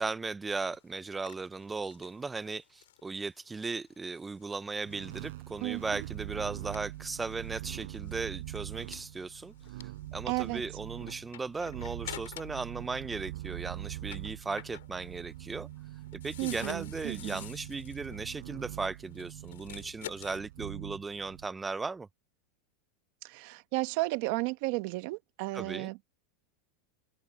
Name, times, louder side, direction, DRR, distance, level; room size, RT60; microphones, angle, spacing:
voice 1, 0.0-9.5 9.8-15.7 16.1-22.1 25.5-25.9, right 4 dB, 10° right, 0.4 m, -37 dB
sound 1, 0.6-12.7 13.0-20.4, left 14 dB, 85° left, 6.0 m, -50 dB
sound 2, 4.8-21.5, right 17 dB, 75° right, 4.1 m, -43 dB
voice 2, 5.6-6.0 10.3-10.6 16.4-17.4 23.2-26.0, right 23 dB, 55° right, 1.0 m, -33 dB
open air
supercardioid pair, 145°, 0 cm